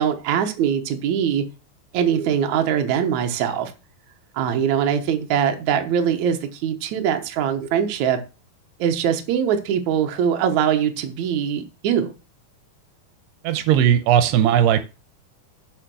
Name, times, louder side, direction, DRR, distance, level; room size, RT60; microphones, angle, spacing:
voice 1, 0.0-1.4 1.9-3.7 4.3-8.2 8.8-12.1, right 8 dB, 65° right, 1.9 m, -22 dB
voice 2, 13.4-14.9, right 10 dB, 85° right, 2.8 m, -17 dB
10.5 x 5.0 x 6.1 m
omnidirectional pair, 4.8 m